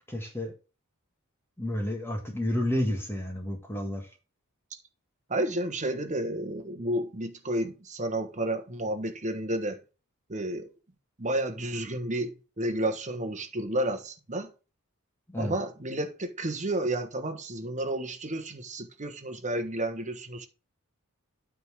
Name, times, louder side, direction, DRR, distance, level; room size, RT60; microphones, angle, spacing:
voice 1, 0.1-0.5 1.6-4.1 15.3-15.5, left 1 dB, 10° left, 1.6 m, -30 dB
voice 2, 5.3-9.8 10.3-10.7 11.2-14.5 15.4-20.5, right 1 dB, 35° right, 1.3 m, -31 dB
9.3 x 3.7 x 6.1 m
head